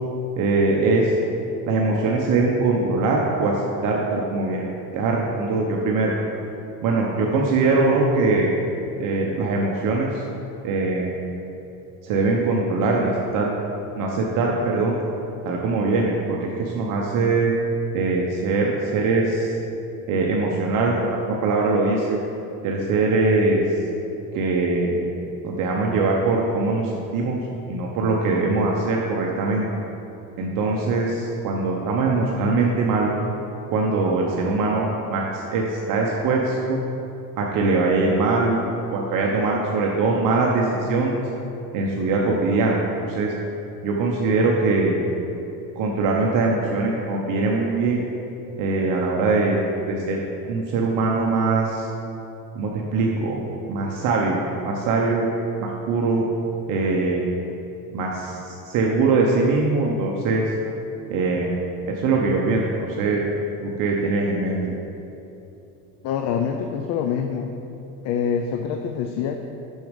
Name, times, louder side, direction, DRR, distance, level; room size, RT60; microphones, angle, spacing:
voice 1, 0.4-1.1 1.7-3.5 3.8-4.6 4.9-6.1 6.8-8.5 9.0-10.1 10.6-11.2 12.0-13.5 14.0-14.9 15.4-17.5 17.9-19.5 20.1-22.2 22.6-23.6 24.3-25.0 25.4-27.4 27.7-29.7 30.4-33.1 33.7-36.8 37.4-38.6 38.9-41.2 41.7-42.8 43.1-43.3 43.8-45.0 45.8-48.0 48.6-50.2 50.5-51.9 52.5-53.4 53.7-54.4 54.6-55.3 55.6-56.3 56.7-57.2 57.9-60.4 61.1-61.6 61.9-63.2 63.6-64.6, right 3 dB, 50° right, -1 dB, 0.9 m, -22 dB
voice 2, 7.1-7.5 66.0-67.5 68.0-69.4, left 7 dB, 40° left, 5 dB, 0.4 m, -26 dB
6.4 x 6.4 x 5.1 m, 2.9 s
cardioid pair, 140°, 42 cm